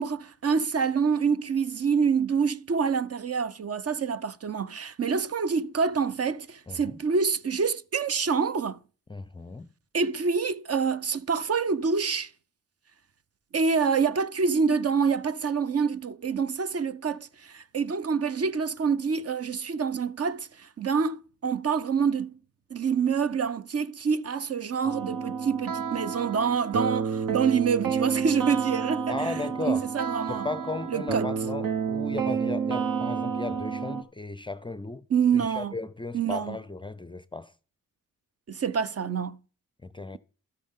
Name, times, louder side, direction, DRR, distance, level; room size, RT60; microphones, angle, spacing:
voice 1, 0.0-8.8 9.9-12.3 13.5-22.3 22.7-29.3 29.7-30.5 30.9-31.3 35.1-35.7 36.1-36.6 38.5-39.4, right 6 dB, 45° right, 0.7 m, -26 dB
voice 2, 6.7-7.0 9.1-9.7 29.1-29.9 30.3-35.0 35.3-37.5 39.8-40.2, left 3 dB, 15° left, 0.5 m, -35 dB
sound 1, 24.8-34.0, right 6 dB, 70° right, 1.2 m, -30 dB
12.5 x 8.4 x 3.7 m
cardioid pair, 60°, 35 cm